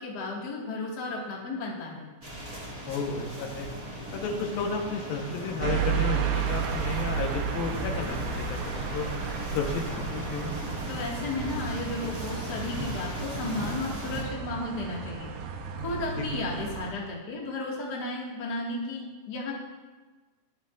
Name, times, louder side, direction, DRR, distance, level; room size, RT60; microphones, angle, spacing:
voice 1, 0.0-2.1 10.9-15.3 15.8-19.6, left 2 dB, 35° left, -3 dB, 2.0 m, -34 dB
sound 1, 2.2-14.2, equal, 15° right, 1.7 m, -38 dB
voice 2, 2.9-3.7 4.1-9.1 9.5-10.5 16.2-16.3, left 4 dB, 80° left, 1 dB, 3.0 m, -32 dB
sound 2, 5.1-10.4, left 2 dB, 65° left, 3.1 m, -44 dB
sound 3, 5.6-16.9, right 7 dB, 80° right, 2.6 m, -33 dB
21.0 x 8.3 x 2.5 m, 1.3 s
omnidirectional pair, 4.1 m